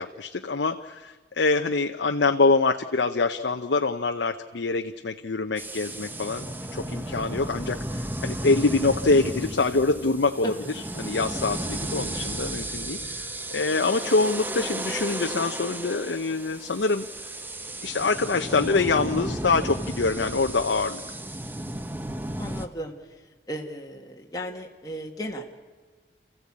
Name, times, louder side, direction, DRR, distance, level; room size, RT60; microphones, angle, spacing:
voice 1, 0.0-17.1 17.8-21.0, left 3 dB, 80° left, 5 dB, 0.7 m, -25 dB
sound 1, 5.6-22.7, right 1 dB, 10° right, 0.7 m, -34 dB
voice 2, 22.4-22.9 23.5-25.4, equal, 20° left, 1 dB, 1.6 m, -35 dB
28.0 x 15.0 x 8.6 m, 1.4 s
head